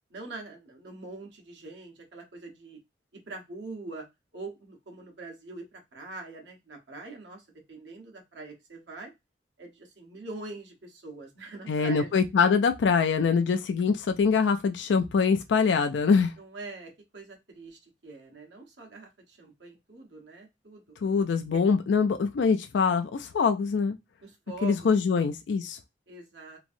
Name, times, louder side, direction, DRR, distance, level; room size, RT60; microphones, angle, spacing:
voice 1, 0.1-2.8 3.1-4.1 4.3-9.1 9.6-12.2 16.4-20.8 24.2-24.8 25.1-25.3 26.1-26.6, right 3 dB, 75° right, 1.1 m, -43 dB
voice 2, 11.7-16.3 21.0-24.0 24.6-25.8, left 5 dB, 80° left, 0.4 m, -24 dB
3.0 x 2.6 x 2.5 m
head